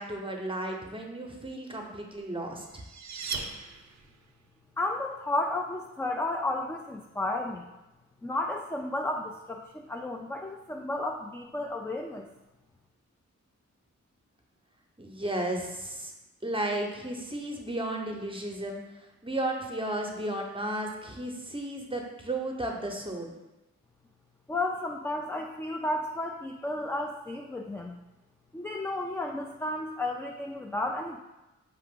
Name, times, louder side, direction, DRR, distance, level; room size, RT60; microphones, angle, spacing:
voice 1, 0.0-2.8 15.0-16.1 16.4-18.8 19.2-23.3, right 1 dB, 15° right, 1 dB, 0.8 m, -34 dB
sound 1, 2.2-4.3, right 5 dB, 65° right, 0.5 m, -38 dB
voice 2, 4.8-7.7 8.2-12.3 24.5-28.0 28.5-31.2, left 2 dB, 10° left, 1 dB, 0.3 m, -32 dB
5.7 x 2.4 x 3.6 m, 1.0 s
cardioid pair, 55°, 30 cm